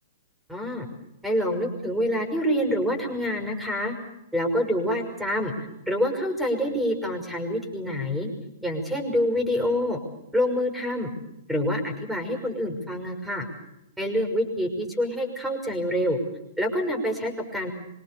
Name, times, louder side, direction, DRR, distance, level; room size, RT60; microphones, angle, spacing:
voice 1, 0.5-0.9 1.2-3.9 4.3-5.5 5.9-8.3 8.6-10.0 10.3-11.1 11.5-13.5 14.0-16.2 16.6-17.7, equal, 5° right, 6 dB, 6.0 m, -26 dB
25.5 x 24.0 x 7.0 m, 0.86 s
figure-of-eight pair, 110°, 0 cm